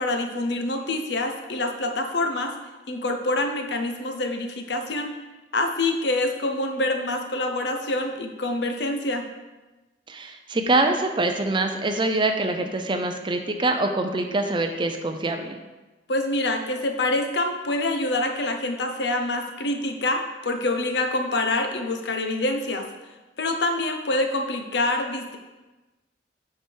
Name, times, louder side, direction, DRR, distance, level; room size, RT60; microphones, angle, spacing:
voice 1, 0.0-2.5 2.9-5.1 5.5-9.3 16.1-22.9 23.4-25.4, left 2 dB, 65° left, 5 dB, 0.8 m, -26 dB
voice 2, 10.1-15.6, right 2 dB, 25° right, 6 dB, 0.6 m, -24 dB
8.5 x 4.8 x 4.6 m, 1.2 s
head